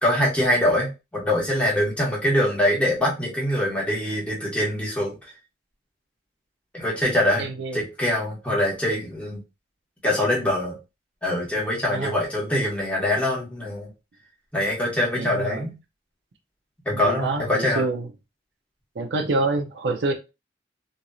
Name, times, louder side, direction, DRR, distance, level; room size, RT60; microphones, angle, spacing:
voice 1, 0.0-0.9 1.1-5.1 6.7-7.5 7.7-9.4 10.0-10.8 11.2-13.9 14.5-15.7 16.8-17.8, left 1 dB, 5° left, -5 dB, 1.2 m, -23 dB
voice 2, 7.4-7.8 11.9-12.2 15.2-15.6 16.9-18.1 19.0-20.1, right 3 dB, 70° right, 5 dB, 0.5 m, -26 dB
3.0 x 2.6 x 2.3 m, 0.27 s
head